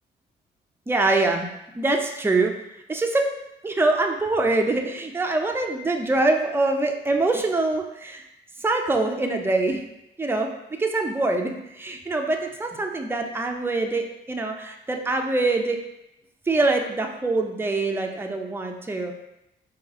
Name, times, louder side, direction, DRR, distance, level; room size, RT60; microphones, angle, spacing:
voice 1, 0.9-1.5 1.7-2.5 2.9-3.2 3.6-8.2 8.6-9.8 10.2-10.5 10.8-15.8 16.5-19.1, right 2 dB, 10° right, 2 dB, 0.5 m, -24 dB
4.6 x 2.4 x 3.6 m, 0.88 s
cardioid pair, 90°, 20 cm